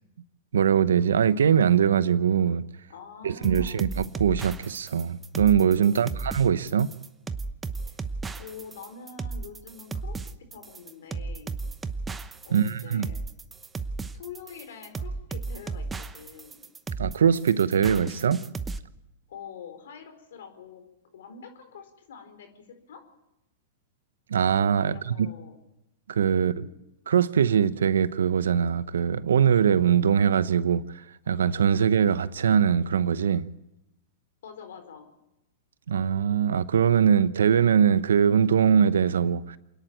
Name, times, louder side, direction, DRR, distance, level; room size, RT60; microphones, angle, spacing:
voice 1, 0.5-2.6 3.2-6.9 12.5-13.1 17.0-18.4 24.3-25.3 26.1-26.5 27.1-30.8 31.3-33.5 35.9-39.6, right 7 dB, 85° right, 0.8 m, -22 dB
voice 2, 2.9-3.9 5.9-6.3 7.8-8.0 8.4-10.2 10.5-11.5 12.4-13.2 14.1-16.7 19.3-20.8 21.1-23.0 24.9-25.6 26.3-26.7 34.4-35.1, left 6 dB, 75° left, 4.4 m, -45 dB
sound 1, 3.4-18.8, right 4 dB, 15° right, 0.9 m, -34 dB
27.5 x 10.5 x 9.0 m
hypercardioid pair, 120°, 0 cm